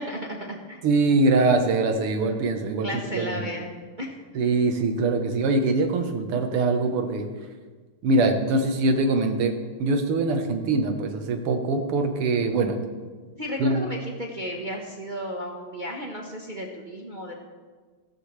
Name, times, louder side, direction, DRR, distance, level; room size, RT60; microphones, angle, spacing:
voice 1, 0.0-0.8 2.8-3.7 4.0-4.1 13.4-17.3, equal, 30° right, -1 dB, 1.1 m, -33 dB
voice 2, 0.8-3.6 4.4-7.3 8.0-12.8 13.6-13.8, right 3 dB, 90° right, 5 dB, 2.1 m, -23 dB
15.5 x 14.5 x 3.3 m, 1.4 s
omnidirectional pair, 2.4 m